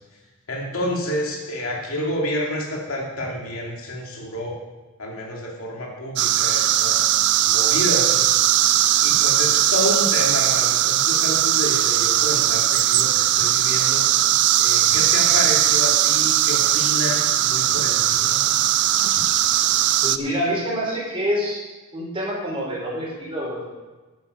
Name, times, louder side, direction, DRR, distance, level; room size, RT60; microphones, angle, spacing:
voice 1, 0.5-4.5 5.0-8.3 8.7-14.1 14.6-18.4, left 1 dB, 65° left, -1 dB, 2.5 m, -29 dB
sound 1, 6.2-20.2, right 12 dB, 50° right, 0.4 m, -19 dB
voice 2, 20.0-21.6 21.9-23.6, equal, 25° right, -4 dB, 4.2 m, -26 dB
9.7 x 9.6 x 5.4 m, 1.2 s
head